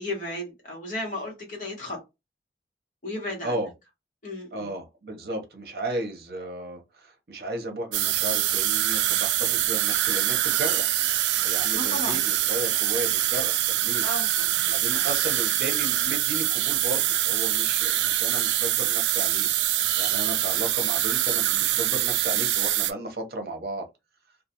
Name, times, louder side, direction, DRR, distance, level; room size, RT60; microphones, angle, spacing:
voice 1, 0.0-2.0 3.0-3.6 4.2-4.7 11.8-12.2 14.0-14.7 14.9-15.1, left 1 dB, 45° left, 1.2 m, -34 dB
voice 2, 4.5-11.0 11.4-14.0 14.7-19.5 20.0-23.9, right 1 dB, 60° right, 0.7 m, -34 dB
sound 1, 7.9-22.9, right 13 dB, 85° right, 0.3 m, -24 dB
2.3 x 2.3 x 2.9 m
head